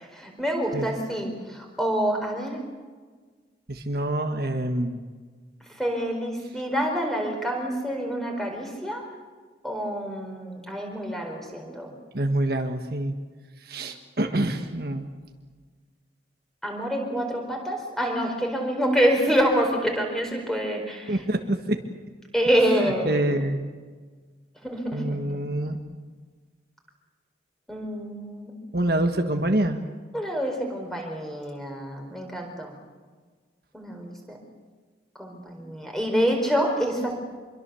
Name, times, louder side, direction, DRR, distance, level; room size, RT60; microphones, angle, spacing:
voice 1, 0.0-2.6 5.7-9.1 9.6-12.0 16.6-21.2 22.3-23.2 24.6-25.4 27.7-28.5 30.1-32.7 33.7-34.4 35.2-37.1, equal, ahead, 2 dB, 4.6 m, -27 dB
voice 2, 3.7-5.0 12.1-13.2 13.6-15.1 21.1-21.8 23.0-23.7 24.9-25.8 28.7-29.8, right 1 dB, 55° right, 5 dB, 1.5 m, -26 dB
26.0 x 23.0 x 7.0 m, 1.5 s
head